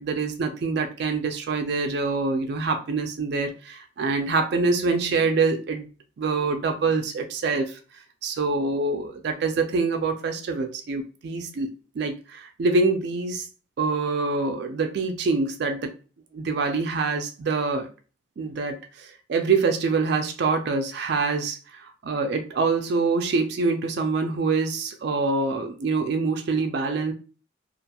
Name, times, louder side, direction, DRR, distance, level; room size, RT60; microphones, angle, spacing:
voice 1, 0.0-5.9 6.2-7.8 8.2-13.5 13.8-15.9 16.3-17.9 18.4-27.1, right 4 dB, 55° right, 5 dB, 0.3 m, -25 dB
2.4 x 2.2 x 2.8 m, 0.36 s
head